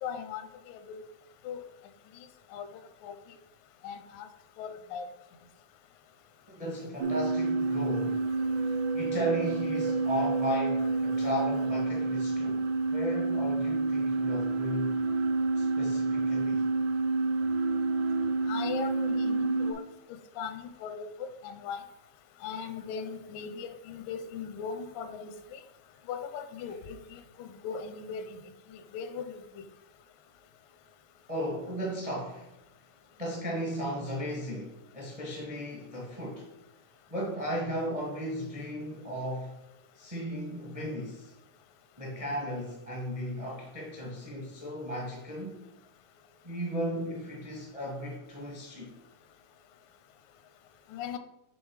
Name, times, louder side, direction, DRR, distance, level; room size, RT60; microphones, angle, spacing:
voice 1, 0.0-1.0 1.4-1.6 2.5-2.7 3.0-3.1 3.8-4.3 4.6-5.1 11.1-11.2 18.5-19.9 20.4-21.8 22.4-25.6 26.1-28.4 28.7-29.6 50.9-51.2, left 6 dB, 85° left, 8 dB, 2.3 m, -39 dB
voice 2, 6.5-8.3 8.6-15.1 15.6-16.7 31.3-32.5 33.2-36.5 37.1-39.6 39.9-41.3 42.0-45.6 46.4-48.9, equal, 30° right, -3 dB, 0.6 m, -36 dB
sound 1, 7.0-19.7, right 3 dB, 75° right, 2.1 m, -29 dB
7.2 x 3.7 x 4.8 m, 0.86 s
omnidirectional pair, 3.8 m